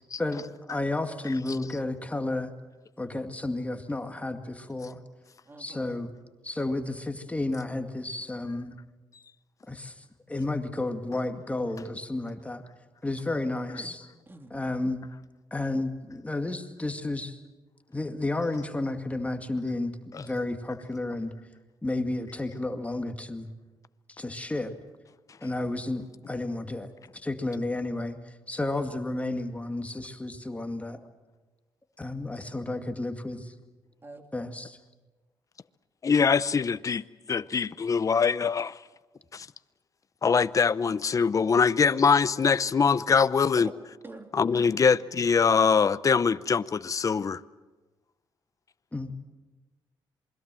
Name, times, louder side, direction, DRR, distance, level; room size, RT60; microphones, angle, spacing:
voice 1, 0.2-2.5 3.0-5.0 5.6-6.1 6.4-8.8 9.7-12.6 13.0-14.1 14.5-15.1 15.5-17.4 17.9-21.3 21.8-23.5 24.1-24.8 25.4-31.0 32.0-33.5 34.3-34.8 48.9-49.1, left 2 dB, 15° left, 2.1 m, -32 dB
voice 2, 5.5-5.9 13.8-14.0 14.3-14.5 34.0-34.3 43.6-43.7 44.0-44.3 44.7-44.8, right 2 dB, 25° right, 2.6 m, -44 dB
voice 3, 36.0-38.8 39.3-39.5 40.2-43.7 44.3-47.4, left 5 dB, 40° left, 0.7 m, -23 dB
27.5 x 21.5 x 7.6 m
cardioid pair, 90°, 9 cm